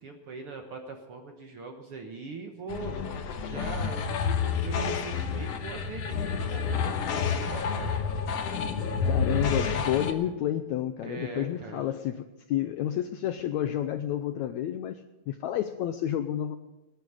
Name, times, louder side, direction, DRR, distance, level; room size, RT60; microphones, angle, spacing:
voice 1, 0.0-2.9 3.4-7.9 11.0-11.9, right 4 dB, 60° right, 3 dB, 1.6 m, -41 dB
sound 1, 2.7-10.1, left 6 dB, 65° left, 1.7 m, -29 dB
voice 2, 9.1-16.6, left 11 dB, 85° left, 9 dB, 1.6 m, -30 dB
20.0 x 9.2 x 6.5 m, 1.0 s
omnidirectional pair, 3.9 m